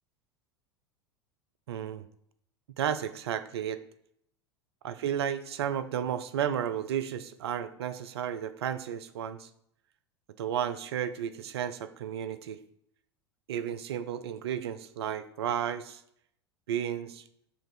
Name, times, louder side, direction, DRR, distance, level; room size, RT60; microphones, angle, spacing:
voice 1, 1.7-2.1 2.8-3.8 4.8-9.5 10.4-12.6 13.5-16.0 16.7-17.2, right 9 dB, 65° right, 11 dB, 0.4 m, -33 dB
6.0 x 2.5 x 3.2 m, 0.72 s
figure-of-eight pair, 80°, 14 cm